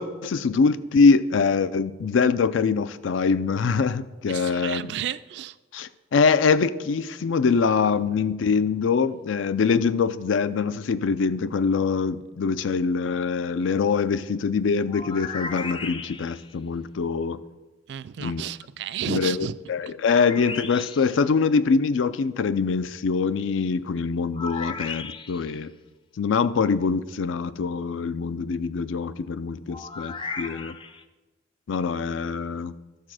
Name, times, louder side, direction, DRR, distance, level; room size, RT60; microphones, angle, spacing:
voice 1, 0.0-4.9 5.7-17.4 18.2-18.4 19.1-25.7 26.2-30.8 31.7-32.7, left 5 dB, 85° left, 15 dB, 0.4 m, -24 dB
voice 2, 4.3-5.8 8.1-8.2 17.9-19.6 19.8-19.9, right 9 dB, 65° right, 16 dB, 0.3 m, -33 dB
sound 1, 14.9-16.5 20.1-21.2 24.3-25.6 29.7-31.0, left 4 dB, 25° left, 0.4 m, -35 dB
12.0 x 4.2 x 6.2 m, 1.1 s
head